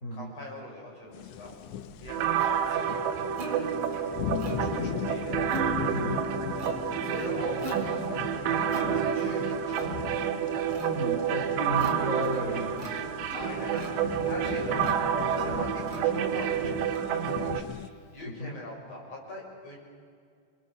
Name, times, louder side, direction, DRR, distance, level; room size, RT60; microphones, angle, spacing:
voice 1, 0.1-1.5 2.0-2.9 4.4-5.4 7.0-9.9 13.3-14.9 15.3-17.7 18.1-19.8, left 1 dB, 35° left, -2 dB, 7.0 m, -42 dB
sound 1, 1.1-17.9, left 11 dB, 90° left, 3.1 m, -39 dB
Plucked string instrument, 1.5-18.2, right 4 dB, 35° right, 3.1 m, -42 dB
sound 2, 2.1-17.6, right 9 dB, 90° right, 3.4 m, -29 dB
voice 2, 5.9-6.3 10.8-12.9 15.5-15.7 18.2-18.5, equal, 20° left, -1 dB, 3.4 m, -34 dB
29.5 x 22.5 x 6.7 m, 2.2 s
omnidirectional pair, 4.9 m